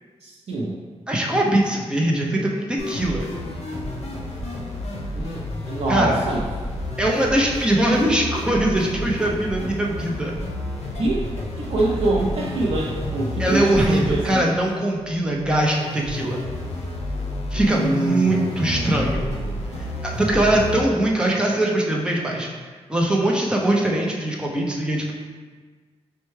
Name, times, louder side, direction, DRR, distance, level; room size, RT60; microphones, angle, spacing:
voice 1, 0.2-0.8 5.1-6.4 10.9-11.3 11.6-14.5 17.5-19.5, right 2 dB, 75° right, -5 dB, 0.5 m, -25 dB
voice 2, 1.1-3.3 5.9-6.2 7.0-10.3 13.4-16.4 17.5-19.3 19.8-22.5 22.9-25.1, right 1 dB, 10° right, -2 dB, 0.5 m, -21 dB
sound 1, 2.8-20.8, left 1 dB, 70° left, 0.6 m, -30 dB
5.5 x 2.2 x 3.1 m, 1.4 s
wide cardioid pair, 160°, 11 cm